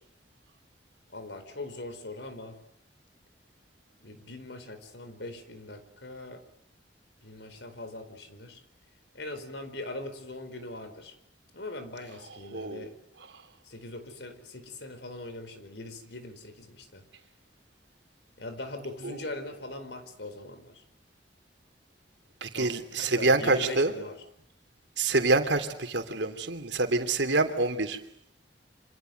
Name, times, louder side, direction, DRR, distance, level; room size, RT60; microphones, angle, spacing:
voice 1, 1.1-2.6 4.0-6.4 7.2-8.6 9.1-11.2 11.5-13.0 13.6-17.1 18.4-20.8 22.5-24.2, left 2 dB, 70° left, 4.5 m, -41 dB
voice 2, 12.5-12.9 19.0-19.1 22.4-23.9 25.0-28.0, right 3 dB, 80° right, 3.1 m, -26 dB
28.0 x 26.5 x 7.9 m
head